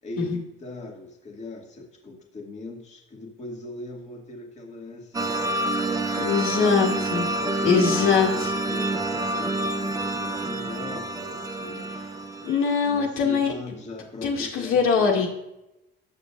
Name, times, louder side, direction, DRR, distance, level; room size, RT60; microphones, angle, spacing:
voice 1, 0.0-5.4 7.2-11.9 12.8-15.3, left 2 dB, 30° left, -1 dB, 2.3 m, -40 dB
sound 1, 5.1-12.9, right 2 dB, 15° right, 0.7 m, -28 dB
voice 2, 6.2-7.3 7.6-8.5 12.4-13.5 14.2-15.3, left 6 dB, 80° left, -1 dB, 2.4 m, -22 dB
20.0 x 7.1 x 2.6 m, 0.87 s
cardioid pair, 140°, 21 cm